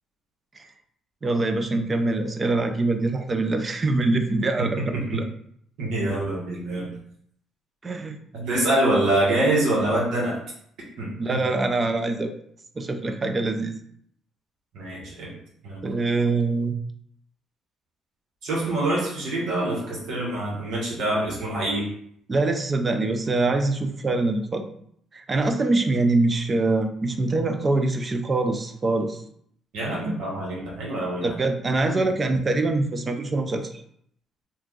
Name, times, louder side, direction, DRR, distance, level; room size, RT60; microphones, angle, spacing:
voice 1, 1.2-4.8 5.1-5.2 7.8-8.2 11.2-12.3 12.8-13.8 15.8-16.7 22.3-24.6 25.1-29.2 31.2-33.7, right 2 dB, 30° right, 6 dB, 0.4 m, -24 dB
voice 2, 5.8-7.0 8.3-10.4 11.0-11.4 14.7-15.3 15.6-15.8 18.4-21.9 29.7-31.3 31.8-32.0, right 1 dB, 80° right, -4 dB, 1.2 m, -25 dB
2.8 x 2.4 x 3.6 m, 0.67 s
cardioid pair, 100°, 0 cm